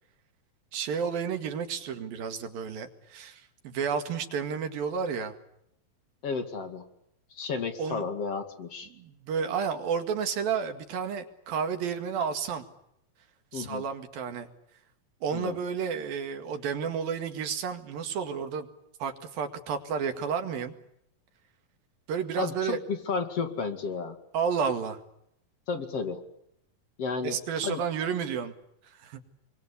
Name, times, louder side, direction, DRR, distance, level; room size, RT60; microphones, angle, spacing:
voice 1, 0.7-5.4 7.8-8.0 8.9-12.7 13.5-14.5 15.2-18.7 19.0-20.7 22.1-22.8 24.3-25.0 27.2-28.5 28.9-29.2, right 6 dB, 90° right, 7 dB, 3.8 m, -31 dB
voice 2, 6.2-6.9 7.3-8.9 13.5-13.8 15.3-15.6 22.4-24.2 25.7-26.2 27.0-27.4 27.6-27.8, left 5 dB, 45° left, 6 dB, 3.0 m, -32 dB
28.0 x 23.0 x 8.4 m, 0.78 s
omnidirectional pair, 4.0 m